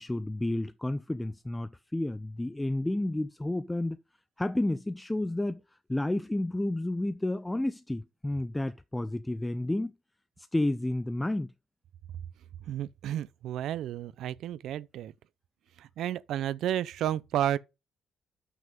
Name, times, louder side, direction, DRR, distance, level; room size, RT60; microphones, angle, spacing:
voice 1, 0.0-4.0 4.4-5.6 5.9-9.9 10.4-11.5, left 1 dB, 10° left, 0.5 m, -31 dB
voice 2, 12.7-15.1 15.8-17.6, right 11 dB, 80° right, 0.4 m, -32 dB
6.1 x 5.5 x 5.2 m
cardioid pair, 90°, 0 cm